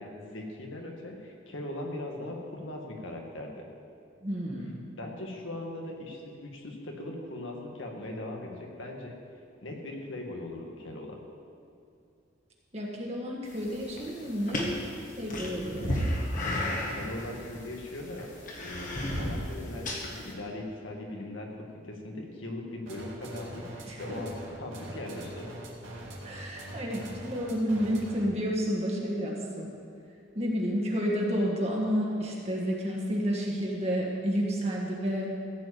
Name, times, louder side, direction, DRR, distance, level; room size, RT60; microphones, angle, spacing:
voice 1, 0.0-3.6 4.9-9.1 9.6-11.2 16.9-18.3 18.6-19.9 20.2-25.5, left 1 dB, 80° left, 0 dB, 1.9 m, -39 dB
voice 2, 4.2-4.8 12.7-14.8 15.2-16.1 23.8-24.0 26.2-29.8 30.3-35.3, equal, 30° right, -2 dB, 1.6 m, -30 dB
sound 1, 13.5-20.3, left 1 dB, 40° left, 1.6 m, -34 dB
sound 2, 22.9-28.4, right 1 dB, 80° right, 2.3 m, -43 dB
15.0 x 5.1 x 8.4 m, 2.6 s
head